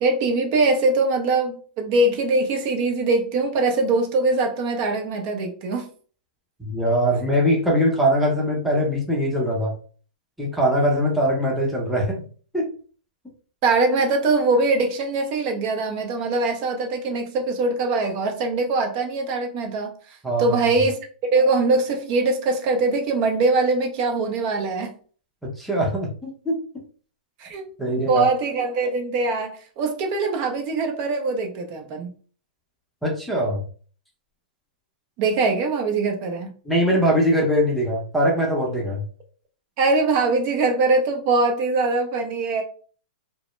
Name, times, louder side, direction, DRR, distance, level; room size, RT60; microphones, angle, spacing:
voice 1, 0.0-5.9 13.6-19.9 20.4-21.0 21.3-24.9 27.4-32.1 35.2-36.5 39.8-42.6, right 3 dB, 40° right, 0.6 m, -22 dB
voice 2, 6.6-9.7 10.4-12.2 12.5-12.7 20.2-20.6 25.4-26.6 27.8-28.3 33.0-33.6 36.7-39.0, equal, ahead, 0.6 m, -22 dB
2.1 x 2.0 x 3.0 m
hypercardioid pair, 130°, 5 cm